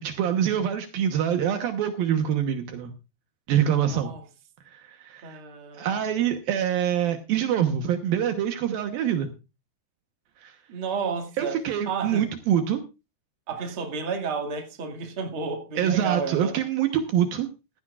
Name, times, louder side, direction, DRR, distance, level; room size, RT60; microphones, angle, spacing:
voice 1, 0.0-2.9 3.5-4.1 4.7-5.4 5.8-9.3 10.4-10.6 11.4-12.8 15.8-17.5, right 9 dB, 70° right, 2.7 m, -25 dB
voice 2, 3.9-4.2 5.2-5.9 10.7-11.6 11.9-12.2 13.5-16.5, right 5 dB, 40° right, 2.4 m, -31 dB
15.0 x 15.0 x 2.4 m
omnidirectional pair, 4.5 m